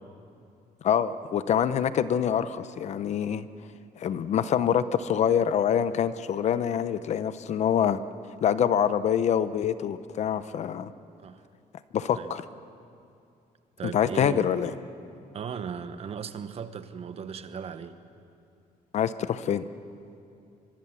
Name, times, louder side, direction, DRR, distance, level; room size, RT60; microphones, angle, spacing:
voice 1, 0.8-3.4 4.0-8.0 8.4-10.9 11.9-12.4 13.9-14.7 18.9-19.6, left 8 dB, 50° left, 13 dB, 0.7 m, -25 dB
voice 2, 13.8-14.5 15.3-18.0, right 7 dB, 40° right, 10 dB, 1.1 m, -37 dB
25.0 x 22.5 x 7.3 m, 2.5 s
cardioid pair, 155°, 15 cm